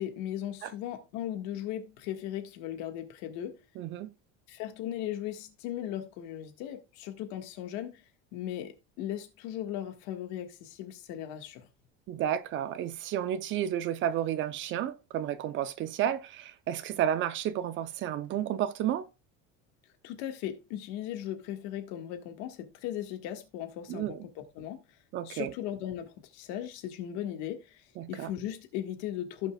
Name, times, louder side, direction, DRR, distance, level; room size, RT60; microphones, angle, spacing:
voice 1, 0.0-3.6 4.5-8.0 8.3-11.7 20.0-24.8 25.2-29.5, left 11 dB, 80° left, 1.7 m, -37 dB
voice 2, 3.8-4.1 12.1-19.1 23.9-24.3 25.1-25.5 28.0-28.3, right 10 dB, 40° right, 0.7 m, -31 dB
16.0 x 5.4 x 2.3 m
cardioid pair, 170°, 29 cm